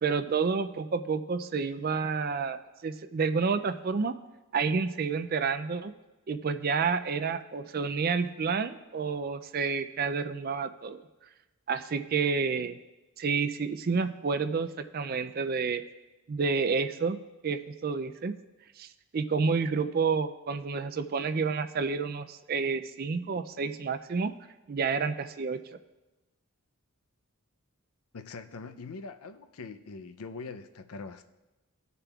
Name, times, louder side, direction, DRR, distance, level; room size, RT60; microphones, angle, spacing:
voice 1, 0.0-4.2 4.5-5.9 6.3-11.0 11.7-12.8 13.2-14.7 14.9-15.8 16.3-18.3 18.8-18.9 19.1-24.3 24.7-25.6, right 5 dB, 45° right, 10 dB, 0.4 m, -29 dB
voice 2, 28.1-31.3, left 4 dB, 85° left, 9 dB, 0.6 m, -42 dB
18.5 x 6.8 x 2.4 m, 1.1 s
head